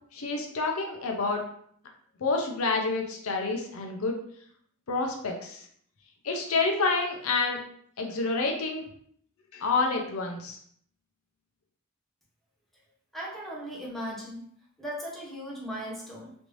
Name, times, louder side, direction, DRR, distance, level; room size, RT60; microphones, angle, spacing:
voice 1, 0.1-1.4 2.2-4.2 4.9-5.6 6.2-7.6 8.0-8.9 9.5-10.6, left 3 dB, 70° left, 2 dB, 0.6 m, -28 dB
voice 2, 13.1-14.5 14.8-16.3, equal, ahead, -4 dB, 0.8 m, -37 dB
3.2 x 2.6 x 3.0 m, 0.63 s
head